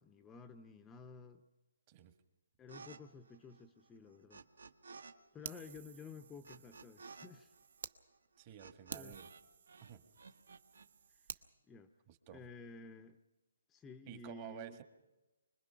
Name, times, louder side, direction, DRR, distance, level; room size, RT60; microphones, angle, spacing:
voice 1, 0.0-1.5 2.6-4.4 5.3-7.5 8.9-9.2 11.1-11.4 11.7-11.9 12.3-13.2 13.7-14.8, left 4 dB, 10° left, 8 dB, 0.7 m, -53 dB
sound 1, 2.7-3.0 3.2-5.1 5.4-9.4 9.7-10.9, right 4 dB, 80° right, 1.4 m, -55 dB
Fire, 5.4-8.0 8.4-8.5 8.9-11.5, right 7 dB, 55° right, 1.0 m, -51 dB
voice 2, 8.4-9.3 9.9-10.0 12.1-12.4 14.1-14.8, right 10 dB, 30° right, 9 dB, 1.4 m, -51 dB
25.5 x 20.5 x 5.7 m, 1.1 s
hypercardioid pair, 155°, 0 cm